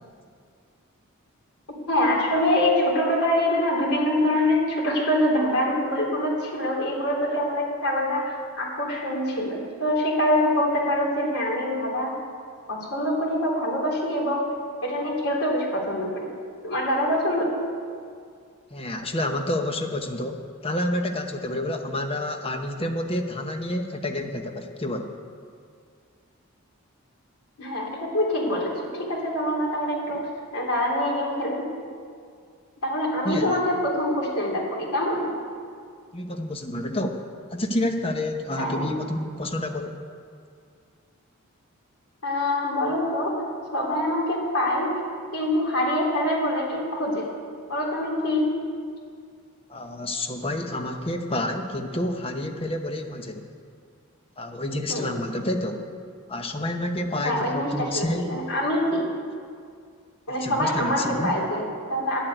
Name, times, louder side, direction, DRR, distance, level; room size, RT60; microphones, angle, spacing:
voice 1, 1.9-12.1 12.7-14.5 14.8-16.2 16.6-17.5 27.6-30.3 30.5-31.7 32.8-35.3 38.6-38.9 42.2-43.4 43.7-45.0 45.3-47.3 47.7-48.5 54.9-55.1 57.2-59.1 60.3-62.2, left 1 dB, 90° left, -3 dB, 3.4 m, -25 dB
voice 2, 18.7-25.1 33.2-33.6 36.1-37.2 37.5-39.9 49.7-53.4 54.4-55.8 56.3-58.3 60.4-61.3, left 1 dB, 25° left, 5 dB, 0.9 m, -29 dB
11.0 x 7.6 x 9.3 m, 2.2 s
head